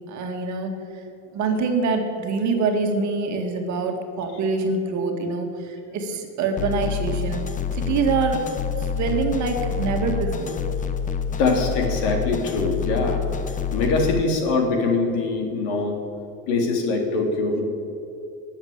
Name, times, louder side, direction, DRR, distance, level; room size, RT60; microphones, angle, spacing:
voice 1, 0.1-1.0 1.3-7.4 7.7-8.4 8.8-10.6, right 4 dB, 40° right, 4 dB, 2.0 m, -25 dB
sound 1, 6.6-14.2, left 7 dB, 20° left, 0.7 m, -27 dB
voice 2, 11.4-13.2 13.7-16.0 16.5-17.6, left 3 dB, 60° left, 2 dB, 3.2 m, -23 dB
19.0 x 7.4 x 8.7 m, 2.8 s
supercardioid pair, 140°, 43 cm